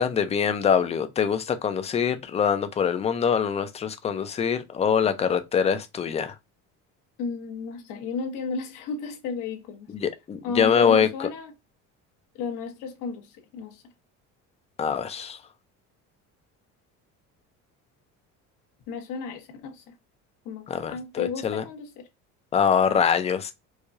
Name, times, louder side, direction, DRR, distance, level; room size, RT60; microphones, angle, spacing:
voice 1, 0.0-6.3 9.9-11.3 14.8-15.4 20.7-21.6 22.5-23.5, left 7 dB, 20° left, 0.4 m, -24 dB
voice 2, 7.2-9.9 10.4-11.5 12.3-13.8 18.9-19.9 20.4-22.1, left 5 dB, 80° left, 1.2 m, -33 dB
4.7 x 2.3 x 2.6 m
cardioid pair, 155°, 32 cm